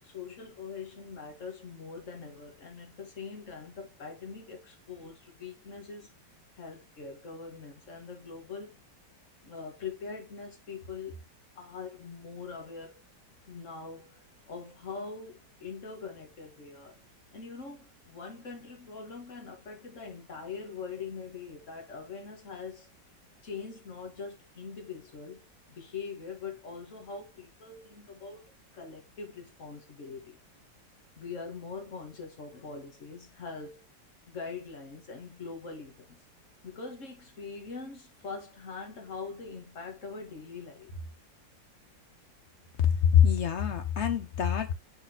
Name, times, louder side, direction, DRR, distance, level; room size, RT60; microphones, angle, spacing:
voice 1, 0.0-6.1 6.6-8.8 9.4-11.2 11.6-13.0 13.5-17.0 17.3-22.9 23.4-25.4 25.7-28.4 28.7-30.4 31.2-33.8 34.3-36.2 36.6-41.1, left 5 dB, 40° left, 2.1 m, -42 dB
voice 2, 42.8-44.7, left 8 dB, 65° left, 0.7 m, -24 dB
6.6 x 4.2 x 3.9 m
omnidirectional pair, 2.0 m